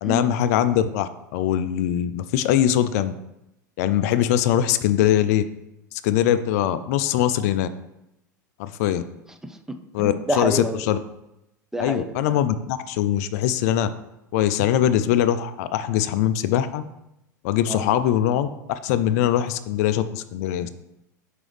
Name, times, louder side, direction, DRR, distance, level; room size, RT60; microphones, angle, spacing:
voice 1, 0.0-3.1 3.8-5.4 5.9-7.7 8.6-9.0 9.9-11.0 11.8-13.9 14.3-16.8 17.4-20.7, left 11 dB, 55° left, 12 dB, 0.4 m, -22 dB
voice 2, 9.4-11.0 11.7-12.4 17.7-17.9, right 1 dB, 5° right, 6 dB, 0.5 m, -29 dB
6.0 x 4.9 x 3.3 m, 0.87 s
figure-of-eight pair, 80°, 10 cm